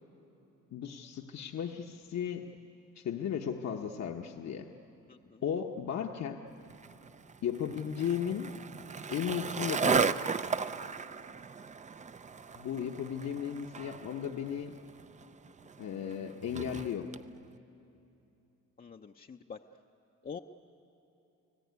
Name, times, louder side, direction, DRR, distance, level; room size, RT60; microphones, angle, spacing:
voice 1, 0.7-2.5 2.9-4.7 5.4-6.4 7.4-8.6 9.1-10.2 12.5-14.8 15.8-17.1, left 8 dB, 60° left, 2 dB, 1.1 m, -35 dB
voice 2, 5.1-5.4 18.8-19.6 20.2-20.4, left 6 dB, 30° left, 3 dB, 0.7 m, -45 dB
Skateboard, 6.7-17.2, right 5 dB, 25° right, 0.5 m, -35 dB
30.0 x 18.0 x 9.5 m, 2.9 s
cardioid pair, 90°, 30 cm